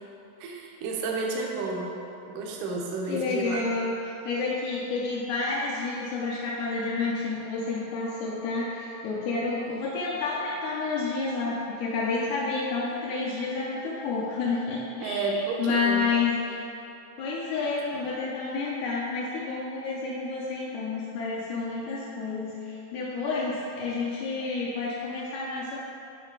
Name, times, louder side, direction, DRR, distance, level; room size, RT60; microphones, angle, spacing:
voice 1, 0.4-1.9 2.3-3.6 15.0-16.1, right 3 dB, 75° right, -1 dB, 2.1 m, -31 dB
voice 2, 3.1-3.9 4.3-16.6 17.2-25.8, left 4 dB, 80° left, -6 dB, 1.9 m, -30 dB
7.7 x 3.2 x 4.6 m, 2.8 s
omnidirectional pair, 4.0 m